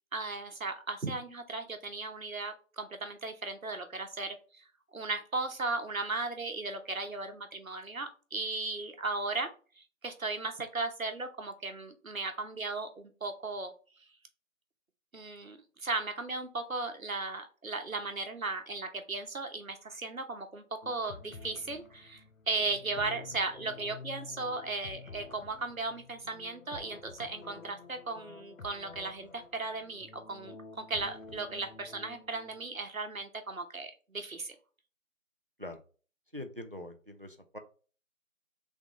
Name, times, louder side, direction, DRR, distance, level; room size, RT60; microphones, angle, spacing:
voice 1, 0.1-4.6 4.9-13.7 15.1-34.5, right 3 dB, 80° right, 6 dB, 1.0 m, -36 dB
sound 1, 20.8-32.7, left 4 dB, 80° left, 0.7 m, -50 dB
voice 2, 36.3-37.6, left 1 dB, 45° right, 6 dB, 0.5 m, -43 dB
3.6 x 3.6 x 3.8 m, 0.38 s
figure-of-eight pair, 175°, 41 cm